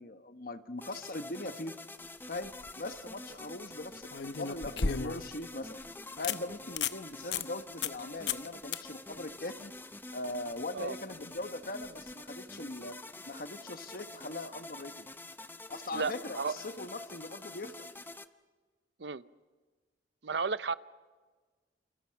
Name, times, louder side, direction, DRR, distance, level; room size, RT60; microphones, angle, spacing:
voice 1, 0.0-1.8 2.3-5.8 6.2-9.7 10.1-13.0 13.3-15.1 15.7-17.9, left 2 dB, 55° left, 9 dB, 1.3 m, -41 dB
sound 1, 0.8-18.3, left 2 dB, 10° left, 0.7 m, -47 dB
sound 2, 2.4-2.7 4.1-5.4 5.8-5.9 6.2-6.4 6.7-7.0 7.3-7.5 7.8-8.0 8.3-8.5 8.7-8.8 11.9-12.0, left 6 dB, 90° left, 0.9 m, -33 dB
voice 2, 15.9-16.6 19.0-19.2 20.2-20.7, right 4 dB, 80° right, 15 dB, 0.7 m, -33 dB
28.5 x 28.0 x 5.9 m, 1.4 s
head